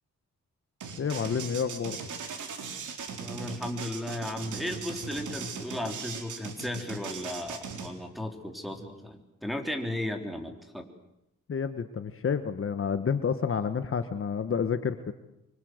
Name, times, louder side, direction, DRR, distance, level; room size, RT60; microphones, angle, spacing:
sound 1, 0.8-7.9, right 5 dB, 85° right, 4.2 m, -38 dB
voice 1, 1.0-2.0 11.5-15.1, left 6 dB, 45° left, 10 dB, 1.3 m, -29 dB
voice 2, 3.2-10.9, left 1 dB, ahead, 3 dB, 3.7 m, -35 dB
25.0 x 25.0 x 8.0 m, 0.85 s
cardioid pair, 115°, 30 cm